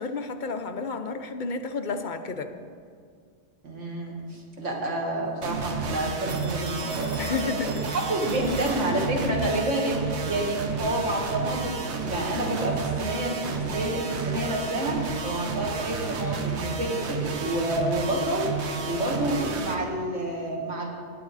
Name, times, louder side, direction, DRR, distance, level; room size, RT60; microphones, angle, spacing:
voice 1, 0.0-2.5 7.2-7.8, left 4 dB, 50° left, 7 dB, 0.7 m, -31 dB
voice 2, 3.6-18.5 18.9-20.9, right 1 dB, 90° right, 0 dB, 2.0 m, -29 dB
sound 1, 5.4-19.7, right 4 dB, 65° right, 1.1 m, -31 dB
Telephone, 6.3-9.3, right 3 dB, 50° right, 1.4 m, -44 dB
17.5 x 7.9 x 4.0 m, 2.1 s
omnidirectional pair, 1.2 m